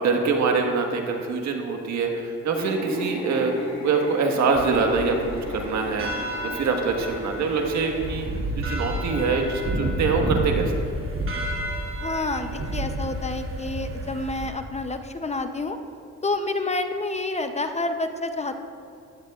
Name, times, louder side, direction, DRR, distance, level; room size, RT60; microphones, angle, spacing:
voice 1, 0.0-8.3 8.6-10.6, right 4 dB, 65° right, 3 dB, 1.5 m, -24 dB
sound 1, 2.5-8.3, left 1 dB, 60° left, 2.4 m, -36 dB
sound 2, 4.5-14.5, right 1 dB, 45° right, 2.5 m, -30 dB
voice 2, 12.0-15.8 16.2-18.5, left 2 dB, 20° left, 7 dB, 0.6 m, -28 dB
16.0 x 12.0 x 2.4 m, 2.4 s
cardioid pair, 90°, 30 cm